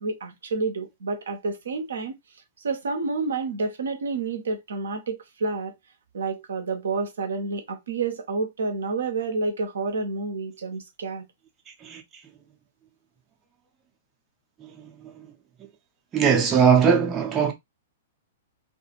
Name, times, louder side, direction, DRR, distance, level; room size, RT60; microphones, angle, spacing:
voice 1, 0.0-2.1 2.6-5.7 6.1-11.2, right 3 dB, 65° right, 0.6 m, -29 dB
voice 2, 16.1-17.5, right 7 dB, 20° right, 0.5 m, -19 dB
2.4 x 2.4 x 2.7 m
figure-of-eight pair, 105°, 0 cm